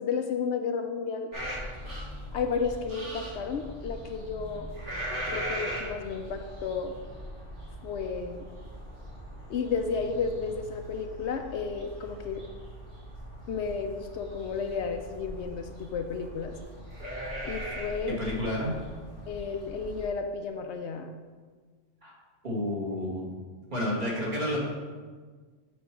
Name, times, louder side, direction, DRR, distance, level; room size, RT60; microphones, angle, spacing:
voice 1, 0.0-1.3 2.3-4.7 5.3-6.9 7.8-8.5 9.5-12.4 13.5-16.5 17.4-18.2 19.3-21.1, left 5 dB, 70° left, 5 dB, 0.8 m, -32 dB
sound 1, 1.3-20.0, equal, 70° right, 2.5 m, -40 dB
voice 2, 18.1-18.7 22.0-22.1 22.4-23.3 23.7-24.7, left 1 dB, 40° right, -5 dB, 1.9 m, -30 dB
7.3 x 4.2 x 5.9 m, 1.5 s
omnidirectional pair, 1.3 m